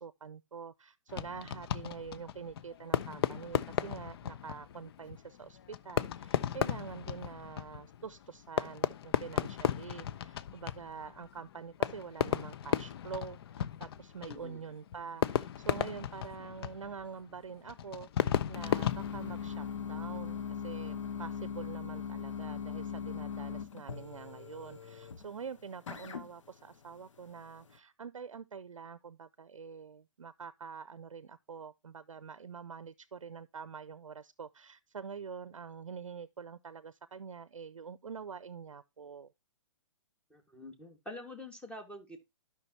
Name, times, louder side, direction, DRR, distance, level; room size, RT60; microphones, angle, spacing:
voice 1, 0.0-39.3, right 6 dB, 90° right, 0.6 m, -46 dB
Fireworks, 1.1-19.9, left 10 dB, 50° left, 0.6 m, -36 dB
voice 2, 14.3-14.6 40.3-42.2, left 1 dB, 5° left, 1.6 m, -46 dB
sound 1, 18.5-27.8, left 7 dB, 75° left, 1.1 m, -40 dB
12.0 x 5.8 x 2.8 m
hypercardioid pair, 130°, 16 cm